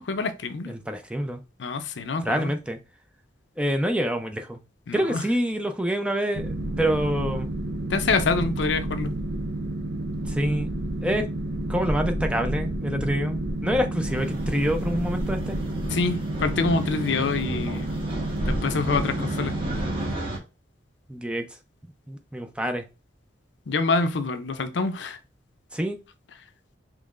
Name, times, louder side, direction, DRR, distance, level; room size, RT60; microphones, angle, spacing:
voice 1, 0.0-0.7 1.6-2.5 4.9-5.2 7.9-9.1 15.9-17.9 18.5-19.5 23.7-25.2, left 4 dB, 75° left, 0.5 m, -26 dB
voice 2, 0.7-1.4 2.2-2.8 3.6-4.6 4.9-7.5 8.4-8.5 10.3-10.7 11.0-11.2 11.7-15.6 21.1-21.4 22.1-22.8 25.7-26.0, equal, 5° right, 0.4 m, -27 dB
Boat Water vehicle, 6.3-20.1, right 1 dB, 80° right, 0.7 m, -30 dB
sound 1, 14.1-20.4, right 1 dB, 30° right, 1.4 m, -35 dB
5.4 x 3.1 x 2.4 m
head